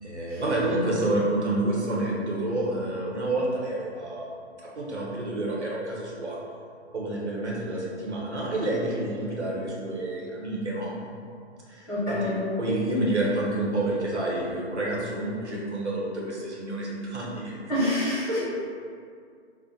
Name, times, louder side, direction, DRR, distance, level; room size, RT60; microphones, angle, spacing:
voice 1, 0.0-4.5 4.8-6.4 6.9-10.9 11.7-12.3 12.6-17.5, right 1 dB, 75° right, -4 dB, 0.9 m, -29 dB
voice 2, 11.9-12.4 17.7-18.4, left 1 dB, ahead, -14 dB, 1.3 m, -26 dB
2.4 x 2.2 x 4.0 m, 2.3 s
figure-of-eight pair, 135°, 34 cm